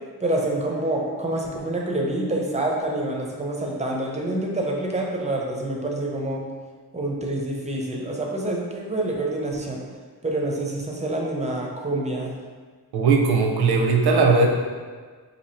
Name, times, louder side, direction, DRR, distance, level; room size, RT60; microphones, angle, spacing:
voice 1, 0.2-6.4 6.9-9.8 10.2-12.4, right 1 dB, 20° right, -1 dB, 0.4 m, -27 dB
voice 2, 12.9-14.5, right 4 dB, 75° right, 1 dB, 0.6 m, -18 dB
2.8 x 2.7 x 4.3 m, 1.5 s
wide cardioid pair, 155°, 39 cm